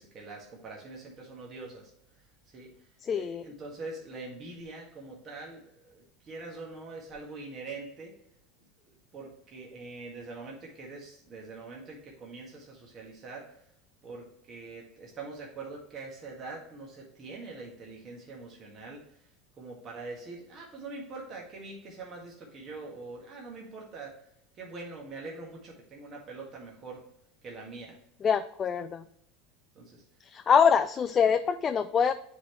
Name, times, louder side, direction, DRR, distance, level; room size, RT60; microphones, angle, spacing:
voice 1, 0.0-1.9 2.2-8.1 8.8-13.6 14.0-19.3 19.6-24.1 24.5-27.0 27.4-28.0 29.7-30.0, right 3 dB, 40° right, -2 dB, 1.7 m, -44 dB
voice 2, 3.0-3.4 28.2-29.0 30.2-32.1, left 7 dB, 30° left, 10 dB, 0.4 m, -24 dB
9.2 x 4.0 x 3.2 m, 0.73 s
hypercardioid pair, 85°, 0 cm